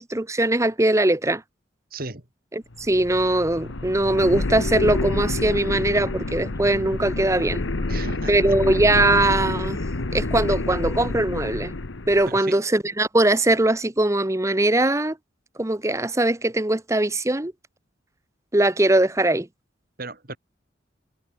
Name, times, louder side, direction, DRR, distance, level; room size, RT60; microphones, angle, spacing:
voice 1, 0.0-1.4 2.5-7.6 8.3-9.8 10.1-11.7 12.1-15.2 15.6-17.5 18.5-19.5, right 1 dB, 15° right, 0.9 m, -21 dB
voice 2, 1.9-2.2 7.8-8.4 12.3-12.6 20.0-20.4, right 3 dB, 50° right, 3.2 m, -35 dB
sound 1, 2.7-12.3, left 2 dB, 85° left, 1.2 m, -28 dB
head